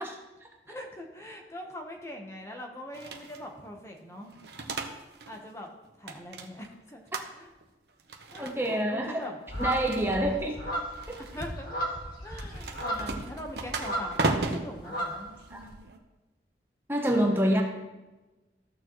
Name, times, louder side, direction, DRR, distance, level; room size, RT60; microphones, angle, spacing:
voice 1, 0.7-4.3 5.3-5.7 6.0-7.0 7.3-7.5 8.3-9.4 10.1-10.4 11.3-11.8 12.2-15.3 17.1-17.5, left 1 dB, 15° left, 2 dB, 1.0 m, -42 dB
sound 1, 2.9-3.5 4.2-5.4 5.6-6.7 7.1-7.6 8.0-8.8 9.5-10.4 10.9-11.5 12.3-16.0, right 3 dB, 65° right, 0.9 m, -35 dB
voice 2, 8.4-9.3 9.6-10.6 11.1-11.2 15.5-15.6 16.9-17.6, equal, 15° right, 1 dB, 0.9 m, -27 dB
(Raw) Goose, 9.5-14.4 14.7-15.7, equal, 55° left, 1.8 m, -35 dB
14.5 x 6.7 x 3.1 m, 1.1 s
head